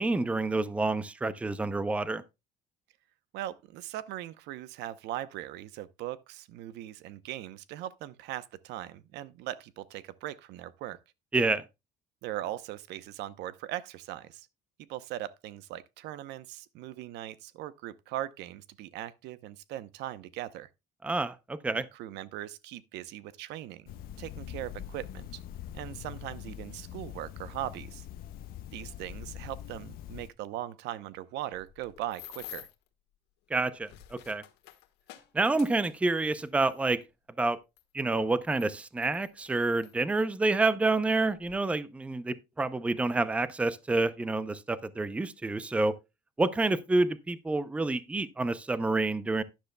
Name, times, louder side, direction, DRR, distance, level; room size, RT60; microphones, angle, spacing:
voice 1, 0.0-2.2 11.3-11.6 21.0-21.9 33.5-34.4 35.3-37.0 37.4-37.6 37.9-45.9 46.4-49.4, right 2 dB, 5° right, 0.5 m, -28 dB
voice 2, 3.3-11.0 12.2-14.5 14.9-20.7 21.7-25.4 25.7-28.1 28.7-32.7, right 13 dB, 80° right, 0.8 m, -40 dB
sound 1, 23.9-30.3, left 11 dB, 60° left, 0.5 m, -43 dB
sound 2, 31.5-32.9 33.6-36.9 37.8-37.9 38.5-39.9 40.7-40.9 41.2-41.5, left 15 dB, 85° left, 1.5 m, -50 dB
12.0 x 10.5 x 2.2 m
cardioid pair, 150°, 17 cm